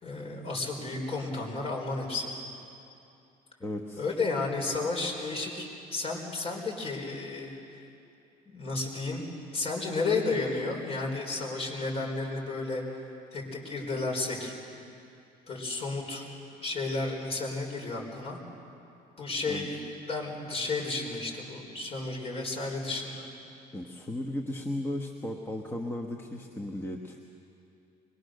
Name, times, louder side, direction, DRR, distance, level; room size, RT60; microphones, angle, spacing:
voice 1, 0.0-2.3 4.0-7.5 8.4-9.2 9.5-12.8 13.3-14.5 15.5-16.3 16.6-18.4 19.2-19.8 20.1-23.3, left 3 dB, 35° left, 0 dB, 4.6 m, -32 dB
voice 2, 3.6-4.0 19.5-19.7 23.7-27.2, left 1 dB, 15° left, 1 dB, 1.3 m, -35 dB
24.0 x 22.0 x 6.6 m, 2.7 s
cardioid pair, 110°, 17 cm